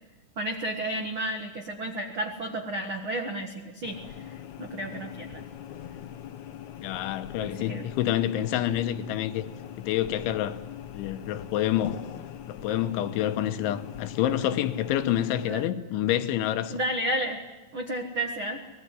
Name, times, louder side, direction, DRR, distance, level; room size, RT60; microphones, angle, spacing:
voice 1, 0.4-4.0 4.2-5.4 7.4-7.8 15.4-15.6 16.7-17.4 17.7-18.6, right 1 dB, 70° right, 1.2 m, -32 dB
sound 1, 3.8-15.7, left 10 dB, 65° left, 1.9 m, -42 dB
voice 2, 6.8-9.5 9.8-10.6 10.9-12.0 12.5-16.8, left 12 dB, 85° left, 3.5 m, -28 dB
24.5 x 19.5 x 9.8 m
omnidirectional pair, 5.3 m